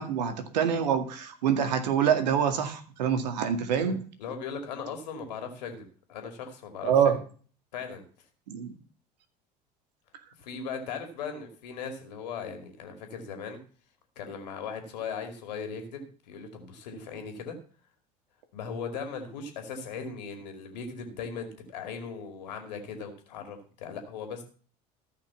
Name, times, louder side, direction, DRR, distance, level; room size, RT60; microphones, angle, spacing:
voice 1, 0.0-4.0 6.8-7.1 8.5-8.8, right 8 dB, 80° right, 9 dB, 2.1 m, -26 dB
voice 2, 3.8-7.2 7.7-8.0 10.4-13.6 14.2-17.6 18.5-24.4, left 5 dB, 80° left, 6 dB, 2.4 m, -38 dB
14.5 x 5.8 x 7.1 m, 0.40 s
hypercardioid pair, 70°, 21 cm